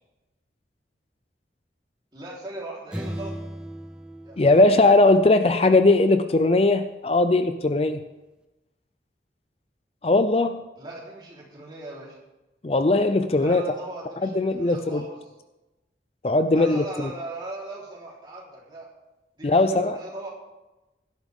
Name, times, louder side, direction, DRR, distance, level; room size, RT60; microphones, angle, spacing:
voice 1, 2.1-3.3 4.2-4.4 10.8-12.2 13.3-15.3 16.5-18.9 19.4-20.3, right 2 dB, 25° right, -5 dB, 3.8 m, -38 dB
sound 1, 2.9-5.6, right 1 dB, 5° right, 0.7 m, -37 dB
voice 2, 4.4-8.0 10.0-10.6 12.6-13.6 14.2-15.0 16.2-16.8 19.4-20.0, left 2 dB, 35° left, 10 dB, 0.5 m, -19 dB
17.0 x 12.0 x 3.6 m, 1.0 s
head